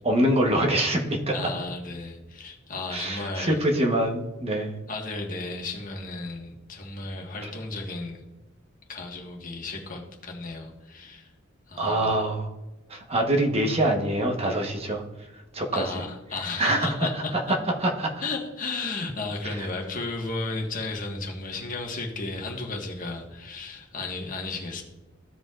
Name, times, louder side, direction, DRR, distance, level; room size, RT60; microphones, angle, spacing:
voice 1, 0.0-1.5 2.9-4.7 11.8-12.5 12.9-15.0 15.5-15.8 16.6-16.9 17.8-18.1, right 1 dB, 30° right, 1 dB, 1.1 m, -24 dB
voice 2, 1.3-3.6 4.9-8.2 8.9-11.3 11.7-12.1 15.7-17.3 18.2-24.8, left 3 dB, 45° left, 1 dB, 1.4 m, -34 dB
15.0 x 5.1 x 2.4 m, 1.1 s
head